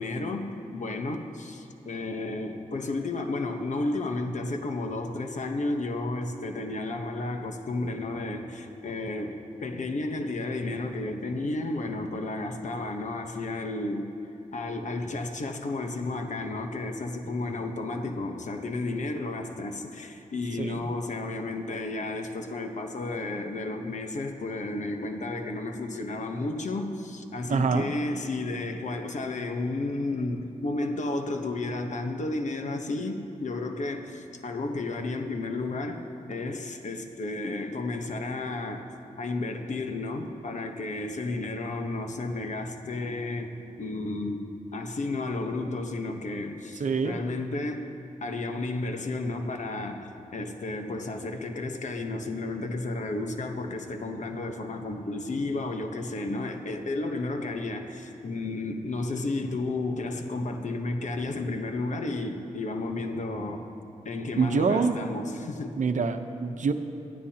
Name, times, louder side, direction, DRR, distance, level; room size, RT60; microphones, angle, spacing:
voice 1, 0.0-9.4 9.6-14.1 14.5-36.0 36.3-38.9 39.2-47.9 48.2-63.7 64.0-65.8, left 2 dB, 60° left, 5 dB, 1.1 m, -32 dB
voice 2, 20.6-20.9 27.5-27.9 46.8-47.2 64.4-65.0 65.7-66.7, right 5 dB, 65° right, 7 dB, 0.9 m, -25 dB
21.5 x 15.0 x 2.9 m, 2.9 s
cardioid pair, 80°, 14 cm